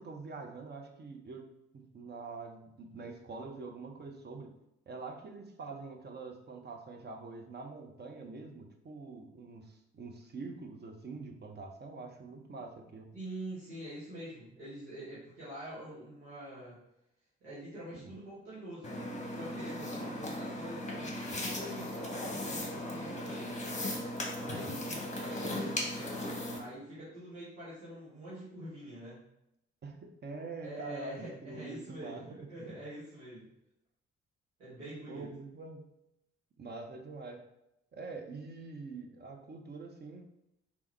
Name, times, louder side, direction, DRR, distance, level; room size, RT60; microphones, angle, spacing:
voice 1, 0.0-1.4 1.7-4.5 4.9-13.1 17.9-18.1 29.8-32.8 35.1-35.8 36.6-37.4 37.9-40.2, right 3 dB, 30° right, 3 dB, 0.7 m, -45 dB
voice 2, 13.1-16.8 17.4-23.6 24.3-29.2 30.6-33.5 34.6-35.3, right 1 dB, 80° right, -10 dB, 1.2 m, -45 dB
sound 1, 18.8-26.6, left 1 dB, 20° left, 1.0 m, -37 dB
3.4 x 3.0 x 3.3 m, 0.83 s
figure-of-eight pair, 40°, 35 cm